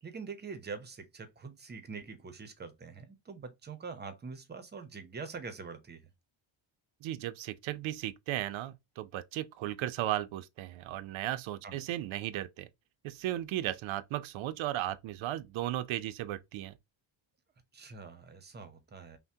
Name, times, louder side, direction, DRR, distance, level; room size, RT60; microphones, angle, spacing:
voice 1, 0.0-6.1 11.6-11.8 17.7-19.2, right 5 dB, 20° right, 0.6 m, -44 dB
voice 2, 7.0-12.7 13.0-16.7, right 14 dB, 80° right, 0.5 m, -35 dB
5.7 x 2.1 x 2.6 m
cardioid pair, 175°, 47 cm